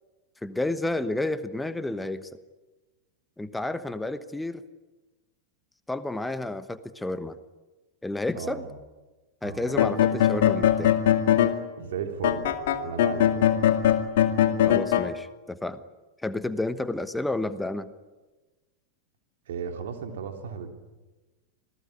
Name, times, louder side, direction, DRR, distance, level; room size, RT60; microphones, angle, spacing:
voice 1, 0.4-2.3 3.4-4.6 5.9-7.4 8.0-8.6 9.4-11.0 14.6-15.8 16.2-17.9, left 2 dB, 5° left, 13 dB, 1.1 m, -31 dB
voice 2, 8.3-8.7 9.4-9.8 11.8-12.5 12.8-13.3 19.5-20.7, right 7 dB, 60° right, 5 dB, 3.3 m, -35 dB
sound 1, 9.7-11.6 12.2-15.1, left 10 dB, 55° left, 2.3 m, -21 dB
27.0 x 18.5 x 9.8 m, 1.2 s
figure-of-eight pair, 90°, 0 cm